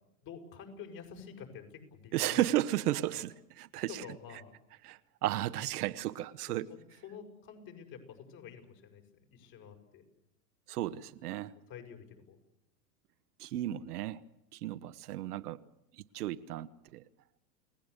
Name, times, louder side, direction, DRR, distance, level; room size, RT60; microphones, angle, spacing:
voice 1, 0.2-2.4 3.1-3.2 3.9-4.5 6.5-10.0 11.7-12.4, left 7 dB, 45° left, 3 dB, 6.5 m, -49 dB
voice 2, 2.1-4.0 4.8-6.7 10.7-11.5 13.4-14.2 14.5-15.6 15.9-17.0, right 14 dB, 70° right, 11 dB, 1.2 m, -34 dB
30.0 x 18.0 x 8.2 m, 0.87 s
hypercardioid pair, 110°, 48 cm